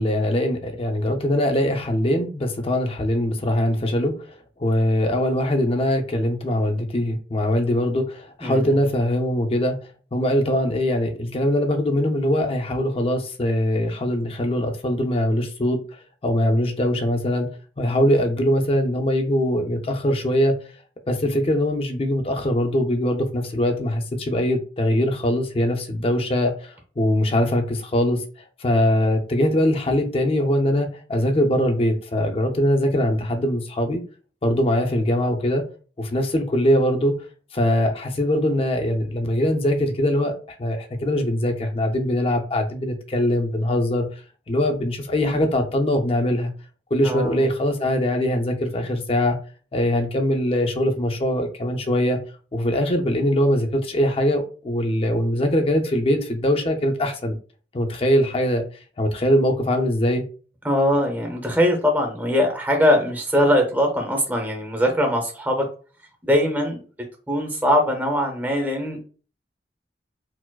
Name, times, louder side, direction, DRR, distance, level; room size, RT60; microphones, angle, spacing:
voice 1, 0.0-4.3 4.6-9.8 10.1-15.8 16.2-17.5 17.8-20.6 21.1-28.2 28.6-34.0 34.4-35.6 36.0-37.1 37.5-44.1 44.5-46.5 46.9-49.4 49.7-52.2 52.5-57.4 57.7-58.6 59.0-60.2, left 1 dB, 35° left, 4 dB, 0.5 m, -22 dB
voice 2, 8.4-8.7 47.0-47.4 60.6-65.6 66.2-66.8 67.3-69.0, equal, 10° right, 2 dB, 0.6 m, -21 dB
4.5 x 2.0 x 2.2 m, 0.38 s
head